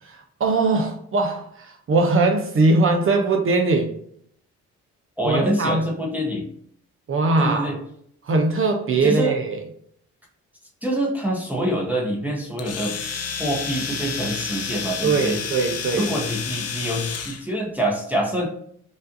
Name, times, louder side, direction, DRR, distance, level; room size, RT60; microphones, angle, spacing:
voice 1, 0.0-3.9 5.2-5.9 7.1-7.7 8.2-9.6 15.0-16.1, right 3 dB, 45° right, 3 dB, 0.7 m, -21 dB
voice 2, 5.2-6.5 7.4-7.8 9.0-9.3 10.8-13.0 13.4-15.4 15.9-18.5, right 1 dB, 5° right, -1 dB, 0.9 m, -25 dB
Domestic sounds home sounds, 12.6-17.4, left 6 dB, 55° left, 0.7 m, -30 dB
5.2 x 2.5 x 2.6 m, 0.66 s
cardioid pair, 90°, 30 cm